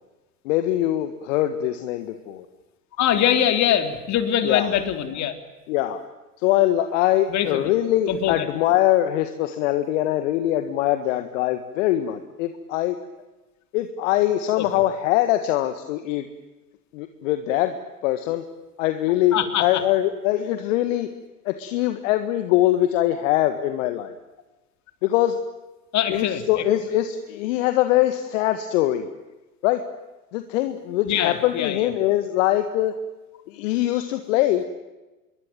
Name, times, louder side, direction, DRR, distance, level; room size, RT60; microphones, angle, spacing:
voice 1, 0.4-2.4 4.4-4.7 5.7-6.0 6.4-13.0 13.7-16.3 16.9-17.8 18.0-18.4 18.8-21.1 21.4-24.1 25.0-25.4 26.1-29.1 29.6-29.8 30.3-32.9 33.5-34.6, left 13 dB, 55° left, 9 dB, 1.8 m, -22 dB
voice 2, 3.0-5.3 7.3-7.7 8.1-8.4 14.6-14.7 19.3-19.8 25.9-26.6 31.1-31.9, left 10 dB, 35° left, 8 dB, 3.6 m, -23 dB
27.0 x 22.5 x 9.3 m, 1.1 s
figure-of-eight pair, 90°, 47 cm